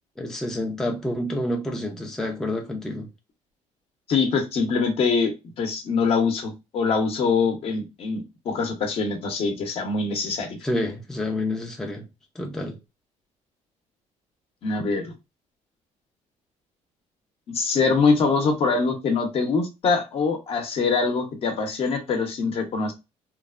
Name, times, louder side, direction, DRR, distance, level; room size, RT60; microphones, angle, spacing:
voice 1, 0.2-3.1 10.6-12.1 12.3-12.8, left 1 dB, 5° left, 0.4 m, -28 dB
voice 2, 4.1-10.6 14.6-15.1 17.5-22.9, left 4 dB, 45° left, 0.7 m, -24 dB
3.0 x 2.1 x 2.4 m
cardioid pair, 145°, 13 cm